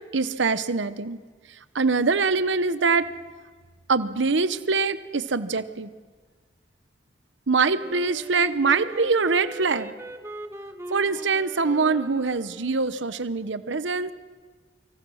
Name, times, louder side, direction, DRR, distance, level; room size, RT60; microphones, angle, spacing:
voice 1, 0.1-1.2 1.7-3.1 3.9-5.9 7.5-9.9 10.9-14.1, right 4 dB, 75° right, 14 dB, 0.9 m, -23 dB
Wind instrument woodwind instrument, 7.8-12.9, right 1 dB, 15° right, 1.2 m, -40 dB
25.5 x 25.0 x 6.4 m, 1.5 s
head